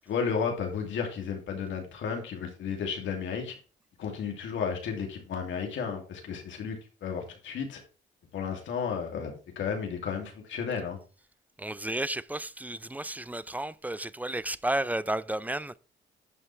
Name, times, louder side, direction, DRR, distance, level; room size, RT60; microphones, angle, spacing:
voice 1, 0.1-3.5 4.0-6.8 7.0-7.8 8.3-11.0, left 6 dB, 75° left, 2.6 m, -33 dB
voice 2, 11.6-15.8, right 1 dB, 10° right, 0.4 m, -32 dB
11.0 x 5.5 x 3.3 m
cardioid pair, 90°, 20 cm